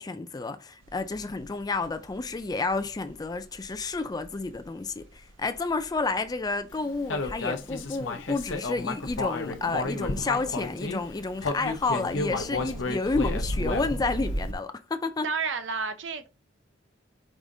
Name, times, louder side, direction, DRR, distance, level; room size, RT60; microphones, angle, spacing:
voice 1, 0.0-15.3, left 3 dB, 20° left, 0.4 m, -30 dB
sound 1, 0.8-14.5, right 1 dB, 90° right, 0.9 m, -40 dB
Human voice, 7.1-11.0 11.4-14.1, left 3 dB, 75° left, 0.7 m, -32 dB
voice 2, 15.2-16.3, right 5 dB, 70° right, 0.6 m, -30 dB
4.9 x 3.7 x 2.6 m
head